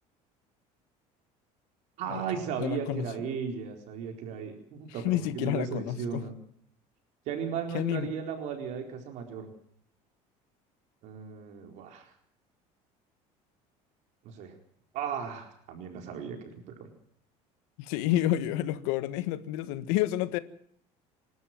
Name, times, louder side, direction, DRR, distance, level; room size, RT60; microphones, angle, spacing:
voice 1, 2.0-6.3 7.3-9.5 11.0-12.1 14.2-14.5 14.9-16.9, right 7 dB, 60° right, 4 dB, 4.3 m, -36 dB
voice 2, 2.6-3.1 5.0-6.3 7.7-8.1 17.8-20.4, left 13 dB, 90° left, 13 dB, 1.6 m, -29 dB
28.0 x 12.5 x 7.6 m, 0.66 s
cardioid pair, 145°, 14 cm